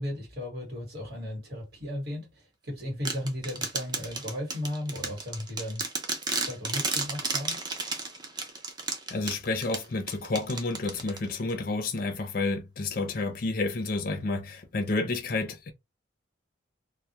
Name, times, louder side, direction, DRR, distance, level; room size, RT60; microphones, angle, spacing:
voice 1, 0.0-5.8 6.5-7.6, left 1 dB, 50° right, 1.2 m, -35 dB
sound 1, 3.1-11.5, right 3 dB, 20° right, 0.4 m, -33 dB
voice 2, 9.1-15.7, left 3 dB, 45° left, 0.5 m, -30 dB
2.2 x 2.0 x 2.7 m
head